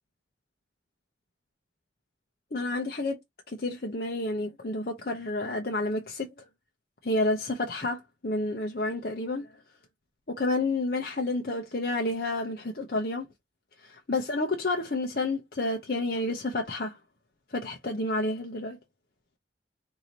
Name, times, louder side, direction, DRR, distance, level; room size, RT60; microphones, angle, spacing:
voice 1, 2.5-3.2 3.5-6.3 7.0-9.5 10.3-13.3 13.8-17.0 17.5-18.8, left 2 dB, 50° left, 0.8 m, -30 dB
4.8 x 2.8 x 4.0 m
head